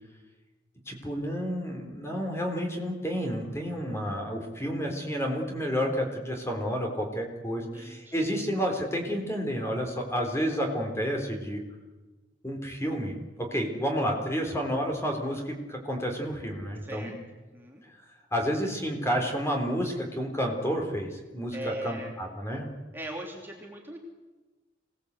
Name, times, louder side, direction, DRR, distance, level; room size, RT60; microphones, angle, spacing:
voice 1, 0.9-11.6 12.4-17.1 18.3-22.7, equal, 15° left, 2 dB, 3.7 m, -30 dB
voice 2, 7.7-8.4 16.8-17.2 17.5-17.8 21.5-22.1 22.9-24.0, right 1 dB, 10° right, -1 dB, 2.9 m, -40 dB
26.5 x 18.5 x 8.3 m, 1.2 s
head